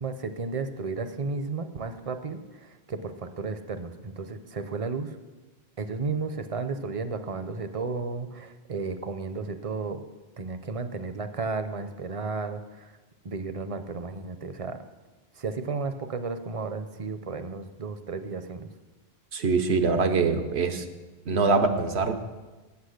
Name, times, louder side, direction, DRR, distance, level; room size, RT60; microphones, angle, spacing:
voice 1, 0.0-2.4 2.9-5.1 5.8-10.0 10.4-12.9 13.2-14.8 15.4-18.7, right 4 dB, 45° right, 10 dB, 0.5 m, -33 dB
voice 2, 19.3-20.8 21.3-22.1, right 4 dB, 90° right, 7 dB, 1.1 m, -23 dB
8.3 x 8.0 x 6.4 m, 1.2 s
omnidirectional pair, 1.1 m